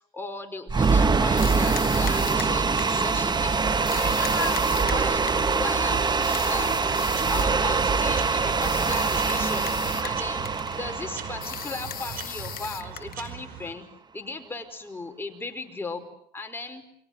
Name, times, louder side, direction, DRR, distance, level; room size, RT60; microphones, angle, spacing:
voice 1, 0.1-10.5 10.8-13.8 14.1-16.0 16.3-16.8, left 3 dB, 15° left, 4 dB, 5.0 m, -37 dB
sound 1, 0.7-12.8, right 4 dB, 25° right, 1.3 m, -24 dB
sound 2, 1.4-3.1 3.9-5.6 6.2-7.6 8.6-10.2 10.5-10.8 11.4-13.3, left 12 dB, 60° left, 1.3 m, -37 dB
sound 3, 6.6-13.7, right 8 dB, 60° right, 5.0 m, -41 dB
30.0 x 23.0 x 8.0 m, 0.72 s
cardioid pair, 110°, 17 cm